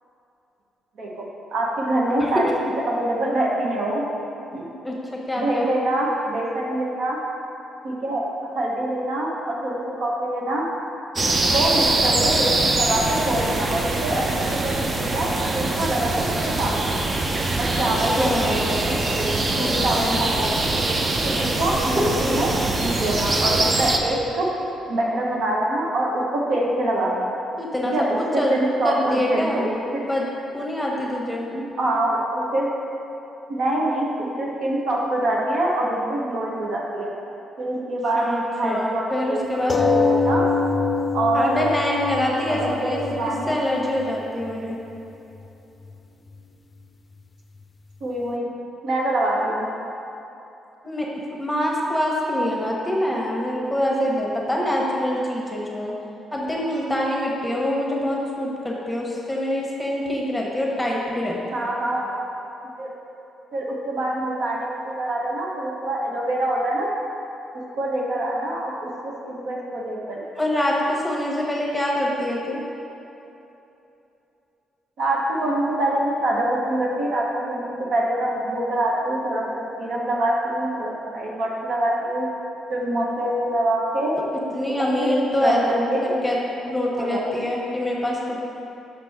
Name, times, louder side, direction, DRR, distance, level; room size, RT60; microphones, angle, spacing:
voice 1, 1.0-2.5 2.9-4.0 4.5-4.7 5.3-7.2 7.8-10.7 11.3-17.0 17.6-20.6 21.2-24.5 24.9-27.3 27.9-28.1 28.3-30.0 31.5-32.7 33.5-37.1 37.6-38.3 38.6-39.4 39.8-40.4 41.1-41.7 42.5-43.7 48.0-48.5 48.8-49.6 61.5-62.1 62.8-62.9 63.5-66.9 67.8-70.3 75.0-82.3 82.7-84.2 85.0-86.1 86.9-87.5, right 1 dB, 70° right, -3 dB, 1.0 m, -25 dB
voice 2, 5.3-5.7 17.8-18.6 19.6-20.2 22.3-22.4 27.6-27.9 28.4-28.6 28.8-29.6 29.9-30.3 30.5-31.4 37.7-37.8 38.1-39.8 41.3-43.0 43.5-44.8 50.8-51.1 51.4-55.9 56.3-61.7 70.4-72.6 84.5-86.4 86.6-88.4, left 1 dB, 5° left, -3 dB, 1.1 m, -25 dB
sound 1, 11.2-24.0, right 2 dB, 35° right, 0.6 m, -23 dB
sound 2, 39.7-44.7 45.5-45.6 45.9-46.0, left 4 dB, 30° left, 0.5 m, -24 dB
5.9 x 5.7 x 3.5 m, 2.9 s
cardioid pair, 90°, 0 cm